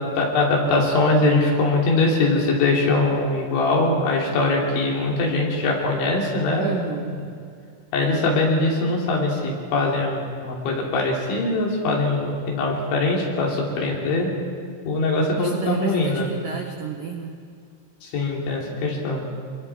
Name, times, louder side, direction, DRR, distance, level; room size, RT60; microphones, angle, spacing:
voice 1, 0.0-6.8 7.9-14.3 14.9-16.3 18.0-19.2, left 2 dB, 65° left, -2 dB, 5.3 m, -22 dB
voice 2, 6.6-7.2 15.4-17.3, right 7 dB, 85° right, 3 dB, 1.9 m, -31 dB
27.0 x 22.0 x 4.7 m, 2.2 s
omnidirectional pair, 5.8 m